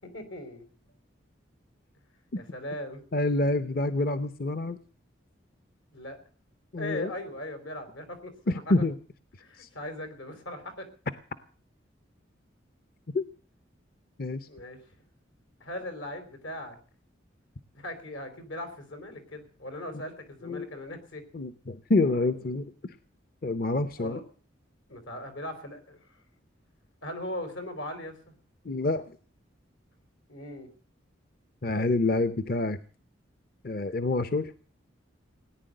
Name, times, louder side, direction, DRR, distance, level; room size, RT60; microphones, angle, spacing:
voice 1, 0.0-0.7 2.4-3.0 5.9-6.2 6.8-8.6 9.4-10.9 14.5-14.8 15.6-16.8 17.7-21.2 24.0-24.2 24.9-26.0 27.0-28.3 30.3-30.7, left 1 dB, 85° left, 8 dB, 4.2 m, -39 dB
voice 2, 3.1-4.8 6.7-7.1 8.5-8.9 9.6-9.7 13.1-13.2 14.2-14.5 20.4-20.7 21.3-22.7 23.4-24.2 28.6-29.1 31.6-32.8 33.6-34.5, left 2 dB, 50° left, 13 dB, 0.7 m, -27 dB
18.0 x 10.0 x 7.7 m, 0.42 s
head